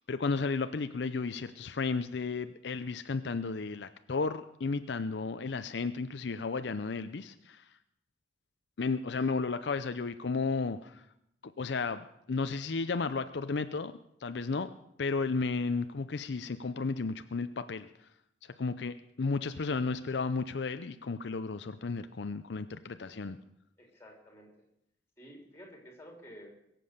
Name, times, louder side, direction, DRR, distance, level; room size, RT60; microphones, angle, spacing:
voice 1, 0.1-7.7 8.8-11.0 11.4-13.9 14.2-14.7 15.0-18.1 18.4-23.4, left 4 dB, 65° left, 10 dB, 0.5 m, -33 dB
voice 2, 23.8-24.7 25.2-26.6, equal, 15° left, 1 dB, 3.4 m, -52 dB
22.5 x 7.6 x 6.7 m, 0.78 s
head